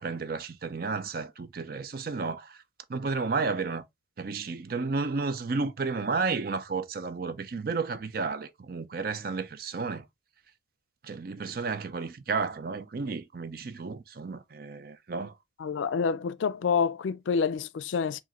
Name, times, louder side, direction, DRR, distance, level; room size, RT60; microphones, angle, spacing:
voice 1, 0.0-2.6 2.9-3.8 4.2-10.1 11.0-15.4, right 4 dB, 50° right, 0.5 m, -32 dB
voice 2, 15.6-18.2, left 6 dB, 90° left, 0.4 m, -28 dB
4.8 x 2.6 x 2.9 m
head